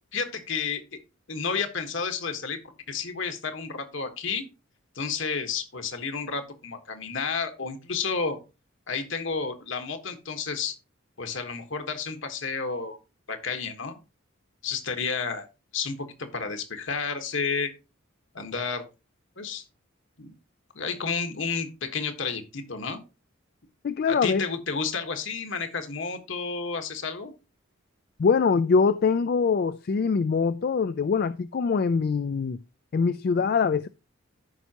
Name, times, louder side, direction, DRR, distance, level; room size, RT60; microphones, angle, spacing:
voice 1, 0.1-0.8 1.3-2.6 2.9-4.4 4.9-8.4 8.9-10.7 11.2-13.0 13.3-14.0 14.6-15.4 15.7-17.7 18.3-18.8 19.4-19.6 20.2-20.3 20.7-23.0 24.1-27.3, left 5 dB, 65° left, 1.4 m, -31 dB
voice 2, 23.8-24.5 28.2-32.6 32.9-33.9, left 5 dB, 50° left, 0.3 m, -23 dB
14.0 x 5.7 x 2.9 m
head